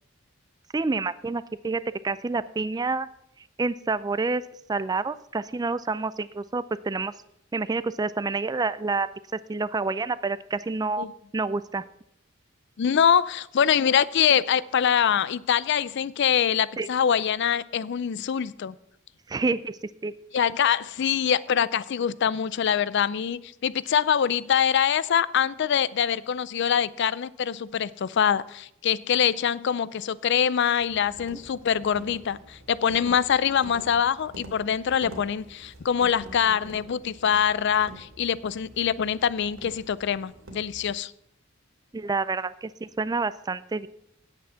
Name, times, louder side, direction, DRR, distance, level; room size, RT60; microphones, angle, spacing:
voice 1, 0.7-3.1 3.6-4.4 4.7-7.1 7.5-9.1 9.5-11.1 11.3-11.8 16.8-16.9 19.3-20.1 41.9-43.9, right 3 dB, 20° right, 16 dB, 0.3 m, -28 dB
voice 2, 12.8-18.7 20.3-41.1, left 8 dB, 55° left, 19 dB, 0.4 m, -24 dB
sound 1, 30.8-41.0, right 1 dB, 75° right, 2.3 m, -47 dB
9.6 x 8.5 x 5.6 m, 0.76 s
head